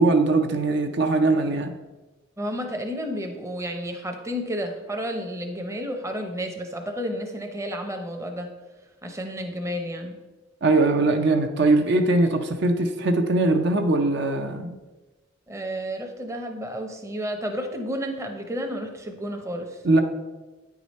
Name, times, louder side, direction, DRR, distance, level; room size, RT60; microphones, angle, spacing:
voice 1, 0.0-1.7 10.6-14.8 19.8-20.0, right 2 dB, 60° right, 6 dB, 0.6 m, -21 dB
voice 2, 2.4-8.5 9.0-10.2 15.5-19.7, equal, 15° right, 4 dB, 0.7 m, -31 dB
9.1 x 4.9 x 4.1 m, 1.2 s
head